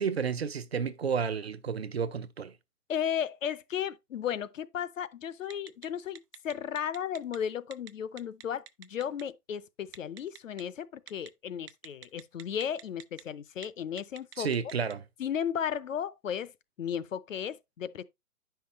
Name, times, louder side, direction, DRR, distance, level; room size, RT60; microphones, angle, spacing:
voice 1, 0.0-2.5 14.4-15.0, right 6 dB, 45° right, 0.5 m, -31 dB
voice 2, 2.9-14.5 15.2-16.5 16.8-18.0, left 8 dB, 55° left, 0.7 m, -35 dB
Telephone, 5.5-5.9 6.1-7.4 7.7-7.9 8.2-9.2 9.9-10.6 11.1-11.3 11.7-13.2 13.5-13.7 14.0-14.9, right 9 dB, 80° right, 0.9 m, -46 dB
9.1 x 5.8 x 3.0 m
hypercardioid pair, 165°, 46 cm